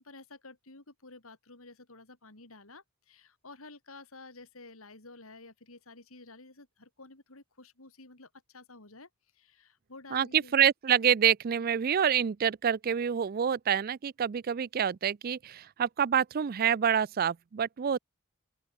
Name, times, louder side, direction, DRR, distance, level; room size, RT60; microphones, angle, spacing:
voice 1, 0.0-10.6, left 3 dB, 75° left, 3.5 m, -52 dB
voice 2, 10.1-18.0, right 8 dB, 45° right, 0.4 m, -27 dB
open air
head